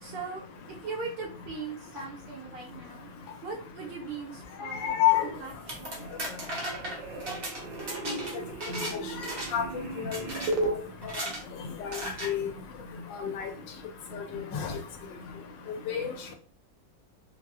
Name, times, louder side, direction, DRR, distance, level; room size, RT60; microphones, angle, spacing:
voice 1, 0.0-3.1 3.4-5.0 5.4-6.1, right 4 dB, 70° right, -2 dB, 1.7 m, -40 dB
voice 2, 4.7-5.3 8.1-8.2 9.5-9.6 10.0-10.2 10.6-10.7 12.2-12.4 13.1-13.5 14.5-14.7 15.9-16.3, left 11 dB, 75° left, 5 dB, 1.2 m, -27 dB
sound 1, 4.8-5.3 5.6-10.7, right 2 dB, 85° right, 1.5 m, -36 dB
sound 2, 5.5-8.9 9.2-9.7 10.1-10.5 11.0-11.4 11.9-12.3, right 1 dB, 50° right, 0.7 m, -36 dB
4.2 x 2.3 x 2.3 m, 0.40 s
omnidirectional pair, 2.1 m